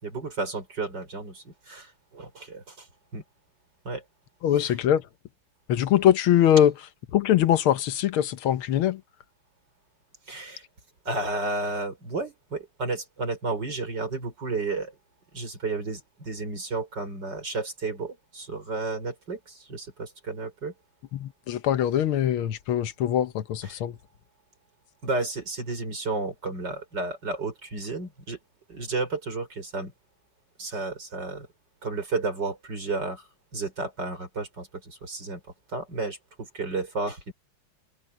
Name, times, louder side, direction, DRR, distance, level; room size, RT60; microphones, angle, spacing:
voice 1, 0.0-2.9 3.1-3.2 3.8-4.0 4.6-4.8 10.3-10.6 11.0-15.0 15.3-20.7 23.6-23.8 25.0-28.4 28.7-29.9 30.6-31.5 31.8-35.4 35.7-37.3, right 3 dB, 55° right, 6.1 m, -32 dB
voice 2, 4.4-5.0 5.7-6.7 7.1-9.0 21.1-24.0, left 11 dB, 85° left, 1.8 m, -22 dB
omnidirectional pair, 2.3 m